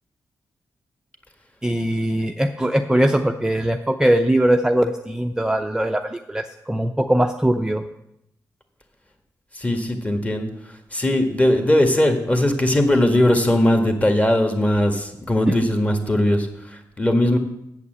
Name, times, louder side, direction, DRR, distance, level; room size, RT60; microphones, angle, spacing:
voice 1, 1.6-7.8 15.5-15.6, right 1 dB, 10° right, 5 dB, 0.6 m, -21 dB
voice 2, 9.5-10.5 10.9-17.4, left 1 dB, 20° left, 5 dB, 1.8 m, -19 dB
8.4 x 7.3 x 8.0 m, 0.82 s
cardioid pair, 85°, 7 cm